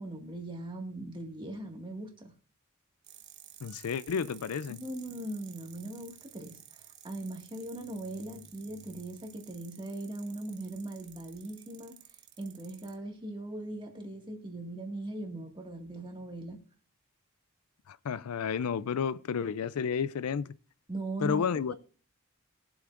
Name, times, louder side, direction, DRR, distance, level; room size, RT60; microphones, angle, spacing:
voice 1, 0.0-2.3 4.7-12.0 12.4-16.6 20.9-21.4 21.7-21.8, right 1 dB, 20° right, 1.9 m, -40 dB
sound 1, 3.0-12.9, right 11 dB, 55° right, 1.1 m, -54 dB
voice 2, 3.6-4.8 17.9-20.5 21.2-21.7, left 6 dB, 85° left, 0.4 m, -31 dB
22.0 x 7.8 x 2.5 m
head